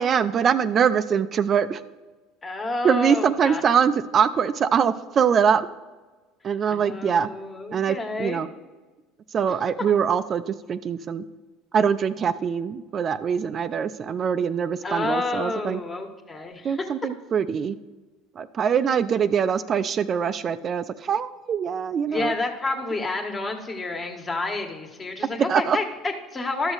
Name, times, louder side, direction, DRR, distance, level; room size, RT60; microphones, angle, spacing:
voice 1, 0.0-1.8 2.8-5.7 6.4-7.3 7.7-8.5 9.3-11.2 11.7-15.8 16.6-17.8 18.4-22.3 25.5-25.8, right 7 dB, 40° right, 13 dB, 0.4 m, -23 dB
voice 2, 2.4-3.6 6.7-8.4 14.8-16.8 22.1-26.7, left 2 dB, 25° left, 4 dB, 1.5 m, -29 dB
12.0 x 6.1 x 4.0 m, 1.3 s
supercardioid pair, 90°, 0 cm